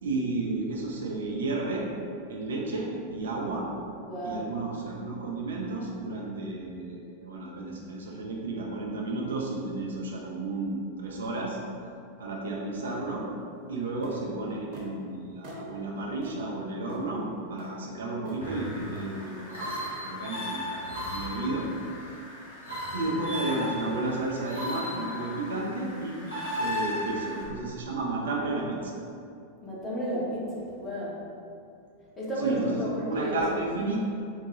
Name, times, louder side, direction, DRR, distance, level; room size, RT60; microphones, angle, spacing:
voice 1, 0.0-1.9 2.3-3.7 4.2-11.6 12.2-13.3 13.7-20.8 21.1-21.7 21.9-22.2 22.9-26.2 26.6-28.9 32.4-34.0, right 2 dB, 65° right, -2 dB, 0.4 m, -32 dB
voice 2, 4.0-4.5 29.6-31.1 32.2-33.4, equal, 20° left, -7 dB, 1.0 m, -32 dB
sound 1, 14.0-14.2 14.7-14.9 15.4-15.6 16.2-16.4 16.9-17.1 17.6-17.7 18.3-18.4 19.0-19.1 19.6-19.8, equal, 40° right, 0.9 m, -44 dB
sound 2, 18.4-27.4, left 1 dB, 70° left, 1.1 m, -36 dB
3.9 x 2.2 x 2.9 m, 2.5 s
figure-of-eight pair, 90°, 0 cm